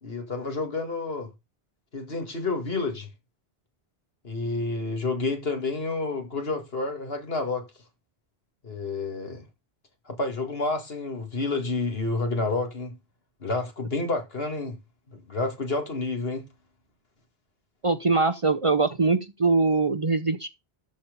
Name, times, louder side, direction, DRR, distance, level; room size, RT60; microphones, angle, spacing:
voice 1, 0.0-1.3 1.9-3.1 4.2-7.7 8.6-9.4 10.1-12.9 13.4-14.8 15.1-16.5, left 3 dB, 65° left, 2.3 m, -29 dB
voice 2, 17.8-20.5, right 3 dB, 35° right, 0.7 m, -22 dB
13.0 x 4.3 x 5.2 m
omnidirectional pair, 1.1 m